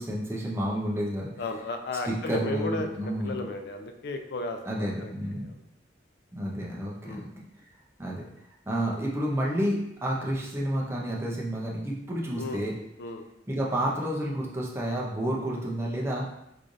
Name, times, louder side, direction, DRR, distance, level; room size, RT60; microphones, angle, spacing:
voice 1, 0.0-1.3 2.1-3.4 4.7-5.5 6.3-7.4 8.0-8.2 8.7-12.7 13.5-16.2, right 1 dB, 15° right, -3 dB, 0.6 m, -30 dB
voice 2, 1.4-5.5 7.0-7.3 12.4-12.6 13.0-13.2, left 3 dB, 65° left, 5 dB, 0.4 m, -35 dB
3.7 x 3.1 x 2.5 m, 0.83 s
head